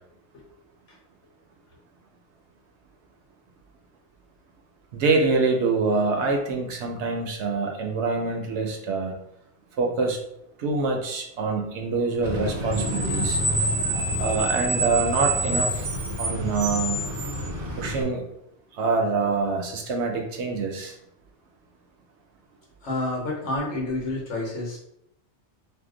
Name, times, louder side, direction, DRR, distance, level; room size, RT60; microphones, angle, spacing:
voice 1, 4.9-9.1 9.8-10.2 10.6-13.4 14.2-15.9 16.2-17.0 17.8-18.2 18.7-20.9, right 4 dB, 70° right, 3 dB, 0.9 m, -25 dB
Screech, 12.2-18.0, right 1 dB, 40° right, 0.5 m, -27 dB
voice 2, 22.8-24.8, left 2 dB, 75° left, -2 dB, 1.3 m, -29 dB
2.8 x 2.1 x 3.7 m, 0.78 s
omnidirectional pair, 1.2 m